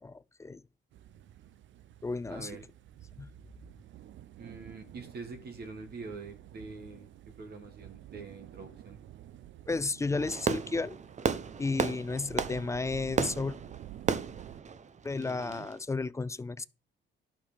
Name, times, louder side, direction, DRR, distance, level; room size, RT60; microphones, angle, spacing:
voice 1, 0.0-0.6 2.0-2.5 3.2-3.3 9.7-11.0 11.6-13.6 15.0-16.7, left 3 dB, 15° left, 0.5 m, -33 dB
sound 1, 0.9-14.6, right 12 dB, 70° right, 0.7 m, -51 dB
voice 2, 2.3-2.6 4.4-7.1 7.4-9.0 15.2-15.7, right 4 dB, 55° right, 1.7 m, -45 dB
Fireworks, 10.1-15.7, right 6 dB, 35° right, 0.7 m, -34 dB
11.0 x 6.7 x 5.0 m
cardioid pair, 90°, 20 cm